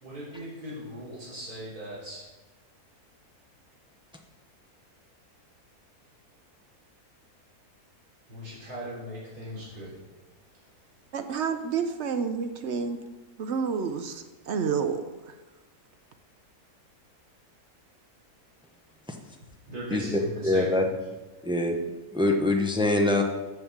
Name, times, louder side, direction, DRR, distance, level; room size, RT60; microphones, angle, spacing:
voice 1, 0.0-2.2 8.3-9.9 19.7-20.7, equal, 85° right, -9 dB, 3.9 m, -38 dB
voice 2, 11.1-13.0 13.4-15.3, right 6 dB, 60° right, 8 dB, 0.8 m, -29 dB
voice 3, 19.9-20.9 21.4-21.8 22.1-23.2, left 2 dB, 5° right, 2 dB, 0.5 m, -24 dB
7.9 x 5.4 x 7.3 m, 1.1 s
omnidirectional pair, 1.6 m